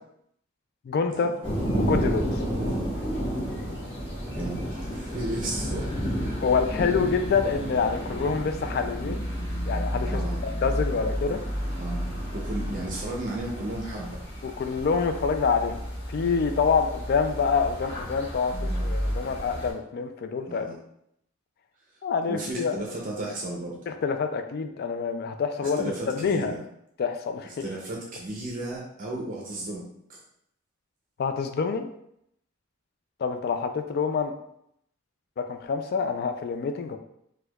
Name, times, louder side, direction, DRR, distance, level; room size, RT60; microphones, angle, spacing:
voice 1, 0.9-1.3 1.7-2.4 6.4-9.3 9.7-11.4 14.4-18.6 18.8-20.8 22.0-22.8 23.9-26.5 27.0-27.5 31.2-31.9 33.2-34.3 35.4-37.0, left 5 dB, 50° left, 7 dB, 0.3 m, -26 dB
sound 1, 1.4-19.7, equal, 30° left, 1.2 m, -31 dB
voice 2, 4.4-6.0 10.1-10.4 11.8-12.1 12.3-14.1 18.5-18.9 20.5-20.8 22.3-23.8 25.6-26.6 27.6-30.2, right 2 dB, 45° right, -2 dB, 0.5 m, -34 dB
4.4 x 2.2 x 2.3 m, 0.75 s
head